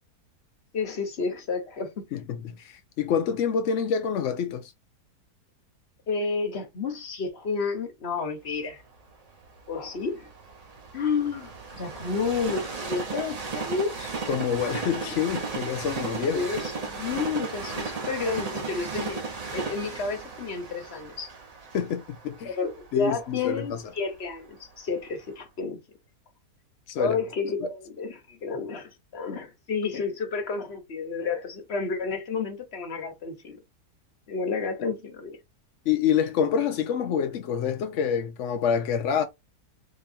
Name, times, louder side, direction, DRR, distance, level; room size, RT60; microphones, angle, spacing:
voice 1, 0.7-2.1 6.1-8.8 9.7-10.3 10.9-14.1 16.3-19.2 19.5-21.3 22.4-25.8 27.0-33.6 34.3-35.4, left 4 dB, 45° left, 1.1 m, -31 dB
voice 2, 2.1-4.7 14.3-16.5 21.7-22.6 22.9-23.8 26.9-27.2 27.6-27.7 35.9-39.2, left 7 dB, 70° left, 0.7 m, -27 dB
Train, 8.7-24.6 25.2-25.3, right 4 dB, 40° right, 0.5 m, -35 dB
3.7 x 2.9 x 2.6 m
omnidirectional pair, 1.8 m